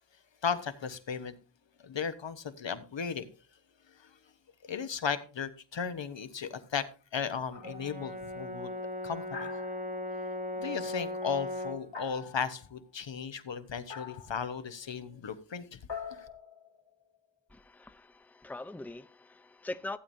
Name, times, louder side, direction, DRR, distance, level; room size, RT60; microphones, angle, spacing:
voice 1, 0.4-1.3 1.8-3.3 4.7-6.9 7.1-8.7 9.0-9.5 10.6-15.8 16.1-16.2, left 6 dB, 85° left, 1.0 m, -35 dB
sound 1, 7.5-8.0 9.3-10.3 11.9-12.7 13.9-14.5 15.9-17.2, left 6 dB, 70° left, 1.7 m, -44 dB
Brass instrument, 7.6-11.9, left 1 dB, 20° right, 0.9 m, -37 dB
voice 2, 17.5-20.0, left 2 dB, 5° left, 0.7 m, -42 dB
15.5 x 8.6 x 2.6 m
cardioid pair, 45°, 43 cm